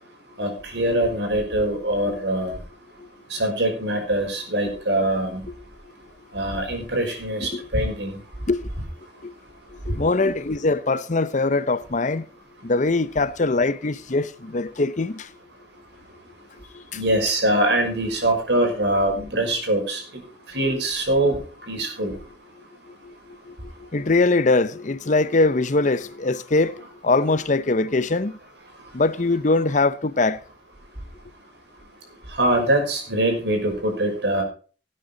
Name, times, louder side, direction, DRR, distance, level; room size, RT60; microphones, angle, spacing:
voice 1, 0.4-2.5 3.3-5.4 6.3-8.2 16.9-20.0 20.5-21.4 21.7-22.1 32.4-34.4, right 1 dB, 75° right, 5.7 m, -23 dB
voice 2, 9.9-12.3 12.6-15.3 16.7-17.0 23.0-23.1 23.5-23.6 23.8-26.7 27.0-28.3 28.9-30.4, left 3 dB, 45° left, 0.8 m, -22 dB
18.0 x 9.1 x 4.0 m
head